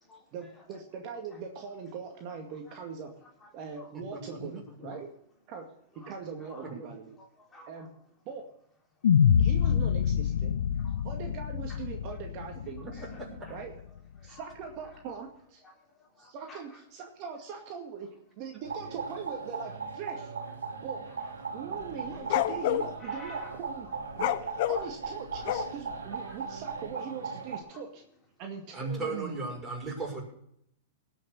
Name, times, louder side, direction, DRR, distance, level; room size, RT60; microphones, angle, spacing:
voice 1, 0.3-3.1 3.5-5.1 5.5-5.7 6.1-7.1 7.7-7.9 8.3-8.4 9.4-10.5 11.0-13.1 13.5-13.7 14.2-15.6 16.2-18.1 18.4-20.3 20.8-21.0 21.5-23.9 24.1-28.0 28.4-29.4, right 6 dB, 45° right, 3 dB, 2.1 m, -41 dB
voice 2, 3.9-4.6 6.6-6.9 13.0-13.5 28.7-30.2, right 3 dB, 20° right, -2 dB, 6.5 m, -37 dB
voice 3, 7.2-7.9 9.6-9.7 10.8-11.0 11.7-11.8 12.9-13.2 13.4-13.6 14.2-14.4 15.6-16.8 20.6-20.7 21.2-21.6 23.0-23.6 26.2-26.4 27.7-27.8, left 1 dB, 15° left, -1 dB, 3.4 m, -51 dB
sound 1, 9.0-13.4, left 8 dB, 75° left, 0.5 m, -26 dB
sound 2, 18.6-27.6, right 5 dB, 85° right, 1.7 m, -38 dB
sound 3, 21.8-22.9 24.1-25.9, left 13 dB, 55° left, 0.9 m, -29 dB
18.0 x 6.4 x 7.1 m, 0.72 s
hypercardioid pair, 115°, 0 cm